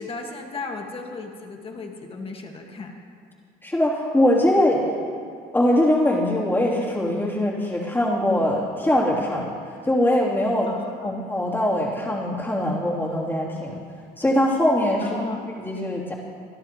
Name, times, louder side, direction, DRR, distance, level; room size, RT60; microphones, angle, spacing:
voice 1, 0.0-2.9 10.7-11.1 15.0-15.4, left 3 dB, 35° left, 2 dB, 1.7 m, -35 dB
voice 2, 3.6-4.8 5.5-9.5 9.8-10.7 11.0-13.8 14.2-15.2 15.6-16.1, left 1 dB, 10° left, -5 dB, 3.1 m, -22 dB
26.0 x 10.5 x 3.1 m, 2.4 s
cardioid pair, 110°, 17 cm